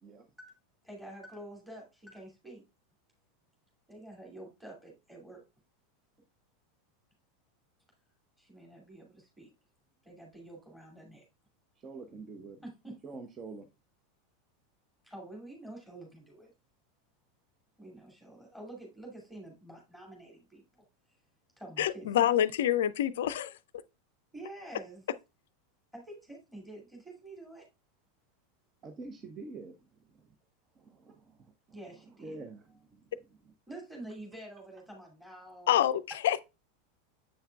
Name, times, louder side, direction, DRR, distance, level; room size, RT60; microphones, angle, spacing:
voice 1, 0.8-2.6 3.9-5.4 8.4-9.5 10.0-11.3 12.6-12.9 15.0-16.5 17.8-20.8 21.6-22.4 24.3-25.1 25.9-27.6 31.7-32.4 33.7-35.8, right 1 dB, 5° right, 2.4 m, -48 dB
voice 2, 11.8-12.6 13.0-13.7 28.8-29.7 30.2-30.3 30.8-31.8 32.2-33.0 33.4-33.5, right 3 dB, 25° right, 0.8 m, -46 dB
voice 3, 21.8-23.5 35.7-36.4, left 11 dB, 60° left, 0.4 m, -26 dB
7.7 x 5.6 x 2.3 m
figure-of-eight pair, 85°, 0 cm